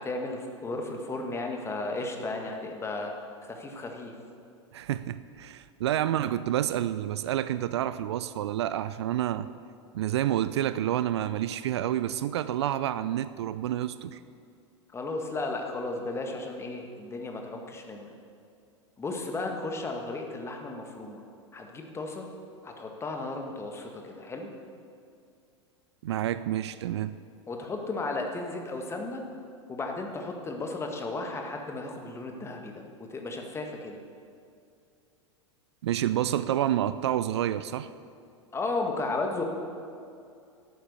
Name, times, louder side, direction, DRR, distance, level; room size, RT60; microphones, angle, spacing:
voice 1, 0.0-3.1 3.4-4.1 14.9-18.1 19.0-21.2 21.5-22.3 22.6-24.5 27.5-29.2 29.7-32.8 33.1-34.0 38.5-39.4, left 2 dB, 15° left, 2 dB, 1.7 m, -34 dB
voice 2, 4.7-9.5 9.9-14.2 26.0-27.2 35.8-37.9, right 12 dB, 60° right, 15 dB, 0.4 m, -29 dB
12.5 x 8.6 x 6.9 m, 2.4 s
figure-of-eight pair, 90°, 15 cm